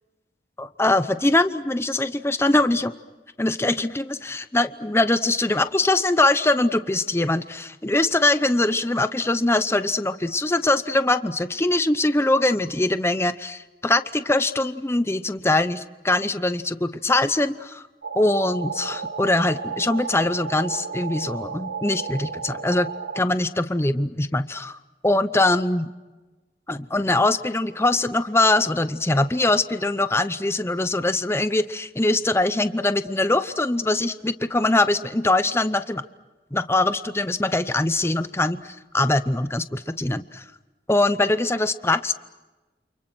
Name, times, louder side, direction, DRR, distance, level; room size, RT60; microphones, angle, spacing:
voice 1, 0.6-2.9 3.4-17.9 18.2-22.9 23.2-24.8 25.0-25.9 26.7-36.0 36.5-40.4 40.9-42.1, left 2 dB, 15° left, 11 dB, 0.8 m, -22 dB
sound 1, 18.0-23.2, right 5 dB, 90° right, 1.2 m, -33 dB
29.5 x 28.0 x 6.2 m, 1.2 s
head